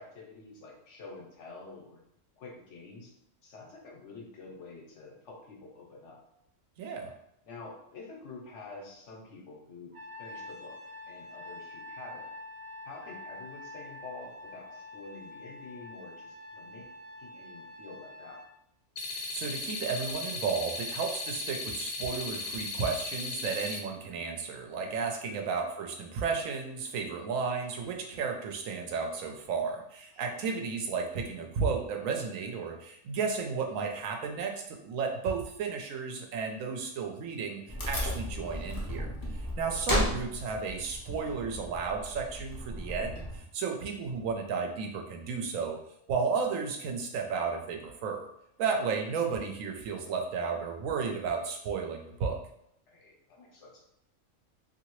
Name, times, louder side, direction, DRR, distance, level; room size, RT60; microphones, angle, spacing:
voice 1, 0.0-2.0 2.4-3.1 3.4-6.2 7.4-9.9 10.2-10.8 11.0-12.3 12.8-16.8 17.2-18.4 25.3-25.5 30.2-30.4 39.6-39.8 52.9-53.8, left 3 dB, 65° left, -1 dB, 1.1 m, -48 dB
voice 2, 6.8-7.1 19.1-45.8 46.1-48.3 48.6-52.4, right 5 dB, 90° right, 3 dB, 1.0 m, -33 dB
Trumpet, 9.9-18.5, left 2 dB, 60° right, 0.7 m, -46 dB
sound 1, 19.0-23.8, left 3 dB, 90° left, 1.0 m, -37 dB
Wood, 37.7-43.4, equal, 25° left, 0.4 m, -34 dB
2.7 x 2.6 x 3.0 m, 0.74 s
omnidirectional pair, 1.3 m